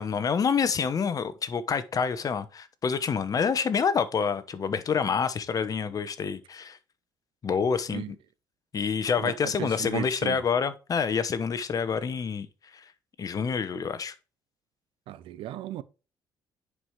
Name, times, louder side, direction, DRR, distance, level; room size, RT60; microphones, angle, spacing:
voice 1, 0.0-6.8 7.4-8.2 8.7-12.5 12.7-12.8 13.2-14.1, left 6 dB, 45° left, 1.0 m, -27 dB
voice 2, 9.2-10.4 15.1-15.8, right 12 dB, 85° right, 0.7 m, -35 dB
9.8 x 4.8 x 3.2 m
cardioid pair, 95°, 9 cm